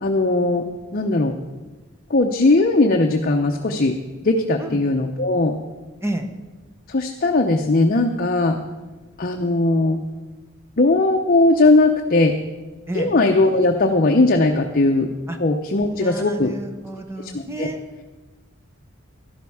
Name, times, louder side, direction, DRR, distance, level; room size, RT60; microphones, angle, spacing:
voice 1, 0.0-0.6 0.9-1.3 2.1-4.0 4.2-5.6 6.9-8.6 9.2-10.0 10.8-12.4 12.9-15.1 15.4-16.5 17.2-17.7, left 2 dB, 45° left, 3 dB, 0.7 m, -18 dB
voice 2, 15.9-17.8, right 1 dB, 15° right, 6 dB, 1.0 m, -30 dB
13.0 x 11.5 x 4.8 m, 1.2 s
head